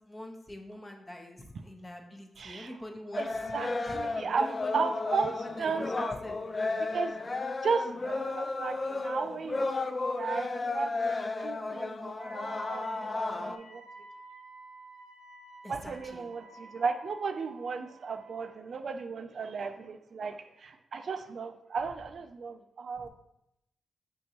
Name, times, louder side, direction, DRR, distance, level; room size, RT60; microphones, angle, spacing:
voice 1, 0.0-3.3 3.8-4.0 4.4-4.9 5.4-6.4 15.6-16.3 23.0-23.1, left 1 dB, 25° left, 3 dB, 0.8 m, -45 dB
voice 2, 2.4-2.8 3.2-4.5 4.7-5.3 5.6-6.2 6.8-7.2 7.6-10.9 11.4-13.8 15.7-23.1, right 5 dB, 65° right, 7 dB, 0.3 m, -35 dB
sound 1, 3.1-13.6, left 3 dB, 40° left, 0.3 m, -33 dB
Wind instrument woodwind instrument, 12.2-18.6, right 3 dB, 85° right, 0.7 m, -52 dB
5.1 x 3.5 x 2.9 m, 0.82 s
cardioid pair, 60°, 0 cm